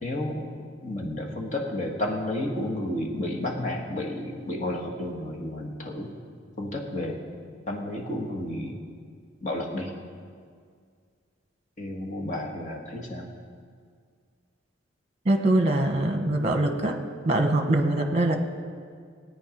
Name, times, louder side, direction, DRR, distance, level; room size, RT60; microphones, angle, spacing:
voice 1, 0.0-0.5 0.8-6.1 6.6-7.2 7.7-8.8 9.4-9.9 11.8-13.3, left 1 dB, 40° left, -1 dB, 1.6 m, -31 dB
voice 2, 15.2-16.9 17.2-18.4, right 1 dB, 35° right, 5 dB, 1.2 m, -23 dB
17.5 x 9.2 x 5.2 m, 2.1 s
head